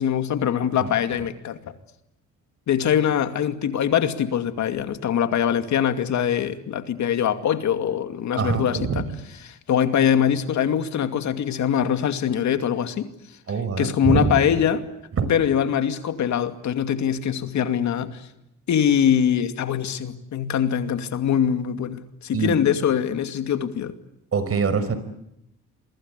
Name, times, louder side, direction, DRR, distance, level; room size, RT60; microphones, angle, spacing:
voice 1, 0.0-1.6 2.7-9.0 9.4-13.1 13.8-14.8 15.3-18.3 18.7-23.9, left 9 dB, 70° left, 8 dB, 2.5 m, -23 dB
voice 2, 8.4-9.0 13.5-14.4 15.2-15.3 22.3-22.6 24.3-25.0, right 5 dB, 50° right, 14 dB, 5.1 m, -24 dB
29.5 x 24.0 x 8.3 m, 0.83 s
cardioid pair, 90°, 30 cm